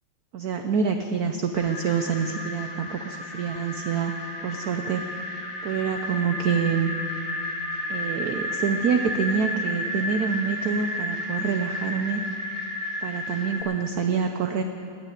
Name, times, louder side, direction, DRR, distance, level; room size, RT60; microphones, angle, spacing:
voice 1, 0.3-6.9 7.9-12.2 13.0-14.6, right 6 dB, 80° right, 6 dB, 0.8 m, -27 dB
sound 1, 1.5-13.6, left 1 dB, 45° left, 2.7 m, -32 dB
17.5 x 6.7 x 9.8 m, 2.7 s
omnidirectional pair, 2.4 m